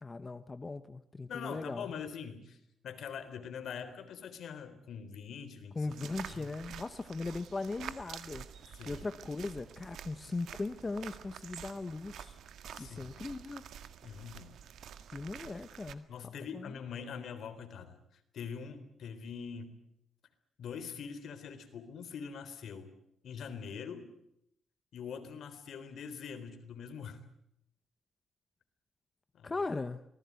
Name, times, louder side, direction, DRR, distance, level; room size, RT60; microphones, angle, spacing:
voice 1, 0.0-1.9 5.7-8.4 8.9-12.4 12.8-13.6 15.1-16.7 29.4-30.0, left 3 dB, 25° left, 11 dB, 0.9 m, -39 dB
voice 2, 1.3-2.6 2.8-5.9 6.3-6.5 8.7-9.1 12.7-13.2 14.0-14.6 16.1-19.7 20.6-22.9 23.2-24.1 24.9-27.2 29.3-29.6, left 6 dB, 70° left, 9 dB, 3.8 m, -43 dB
sound 1, 5.9-15.9, right 9 dB, 80° right, 1.8 m, -48 dB
26.5 x 19.5 x 9.5 m, 0.79 s
cardioid pair, 130°, 0 cm